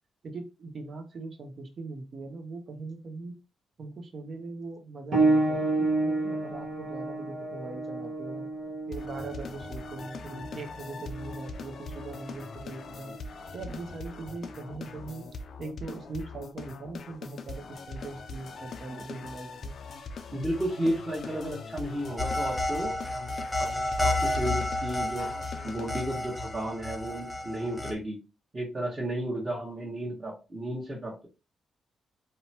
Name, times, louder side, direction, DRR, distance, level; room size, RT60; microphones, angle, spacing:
voice 1, 0.2-3.4 3.8-8.5 8.9-13.1 13.5-15.2 15.6-19.7, right 3 dB, 50° right, 6 dB, 0.6 m, -41 dB
sound 1, 5.1-15.3 16.3-16.4 17.1-17.2, right 2 dB, 70° right, 1.0 m, -31 dB
sound 2, 8.9-26.1, left 4 dB, 65° left, 0.3 m, -42 dB
voice 2, 20.3-23.0 23.6-23.7 24.0-25.3 25.6-28.2 28.5-31.3, right 1 dB, 25° right, -6 dB, 1.2 m, -33 dB
sound 3, 22.2-27.9, left 1 dB, 10° left, 0.7 m, -31 dB
2.8 x 2.2 x 2.7 m, 0.30 s
cardioid pair, 85°, 0 cm